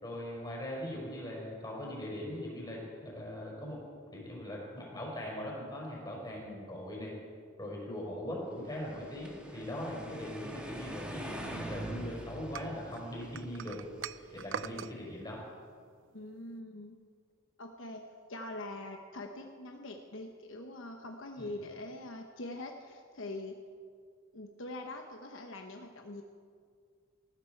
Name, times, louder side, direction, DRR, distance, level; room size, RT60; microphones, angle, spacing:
voice 1, 0.0-3.8 4.1-7.1 7.6-13.8 14.2-15.4 21.4-21.5, left 1 dB, 20° left, -3 dB, 4.8 m, -40 dB
sound 1, 8.7-14.8, right 1 dB, 5° right, 1.5 m, -44 dB
sound 2, 12.5-14.9, right 8 dB, 60° right, 0.4 m, -42 dB
voice 2, 16.1-17.0 17.6-18.0 18.3-23.5 24.3-26.2, left 2 dB, 65° left, 3 dB, 1.0 m, -43 dB
19.0 x 14.5 x 4.6 m, 2.1 s
head